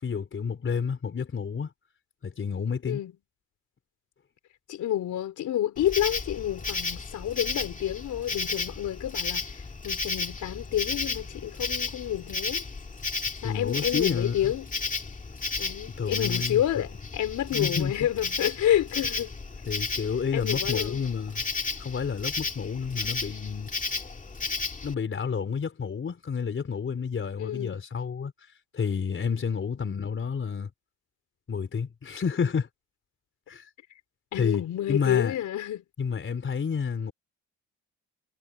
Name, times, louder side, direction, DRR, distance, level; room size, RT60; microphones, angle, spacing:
voice 1, 0.0-1.7 2.2-3.0 13.4-14.6 15.9-16.6 17.5-17.9 19.7-21.4 21.8-23.7 24.8-28.3 28.7-30.7 31.5-32.7 33.5-33.6 34.3-34.6 34.9-35.4 36.0-37.1, left 6 dB, 40° left, 4.1 m, -30 dB
voice 2, 4.7-12.6 13.4-14.7 15.6-19.3 20.3-21.0 27.4-27.8 34.3-35.8, left 12 dB, 75° left, 4.3 m, -29 dB
Insect, 5.8-24.9, left 4 dB, 25° left, 2.3 m, -33 dB
cardioid pair, 90°, 30 cm